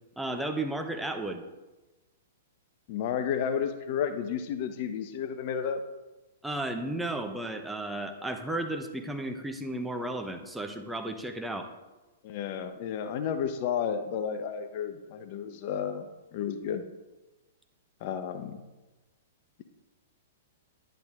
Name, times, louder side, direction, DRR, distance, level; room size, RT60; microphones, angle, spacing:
voice 1, 0.2-1.4 6.4-11.7, right 1 dB, 5° right, 5 dB, 0.9 m, -33 dB
voice 2, 2.9-5.8 12.2-16.1 16.3-16.8 18.0-18.6, left 8 dB, 45° left, 8 dB, 0.9 m, -32 dB
10.5 x 10.5 x 3.7 m, 1.1 s
figure-of-eight pair, 110°, 0 cm